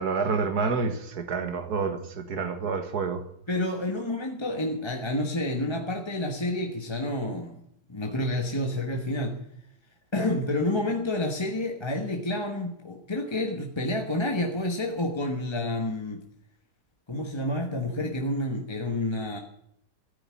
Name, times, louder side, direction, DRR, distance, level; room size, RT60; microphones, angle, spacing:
voice 1, 0.0-3.2, right 5 dB, 70° right, 2.0 m, -28 dB
voice 2, 3.5-7.6 7.9-9.4 10.1-16.2 17.1-19.4, left 1 dB, 20° left, 1.2 m, -29 dB
14.5 x 8.9 x 9.8 m
omnidirectional pair, 1.8 m